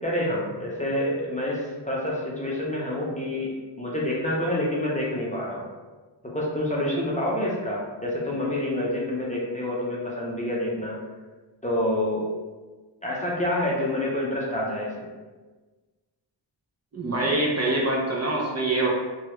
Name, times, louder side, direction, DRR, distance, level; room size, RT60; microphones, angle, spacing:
voice 1, 0.0-5.6 6.3-11.0 11.6-12.3 13.0-15.1, left 1 dB, 15° left, -5 dB, 0.5 m, -27 dB
voice 2, 16.9-18.9, right 2 dB, 35° right, -3 dB, 0.5 m, -24 dB
3.0 x 2.3 x 2.9 m, 1.3 s
wide cardioid pair, 105°, 45 cm